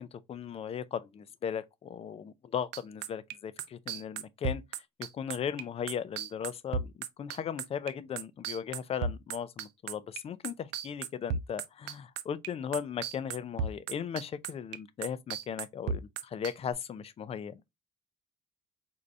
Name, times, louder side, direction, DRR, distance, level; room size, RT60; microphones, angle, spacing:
voice 1, 0.0-4.6 5.0-17.6, left 8 dB, 35° left, 0.4 m, -37 dB
sound 1, 2.7-12.5 12.7-16.7, right 6 dB, 90° right, 0.5 m, -34 dB
4.5 x 2.7 x 2.5 m
cardioid pair, 110°, 17 cm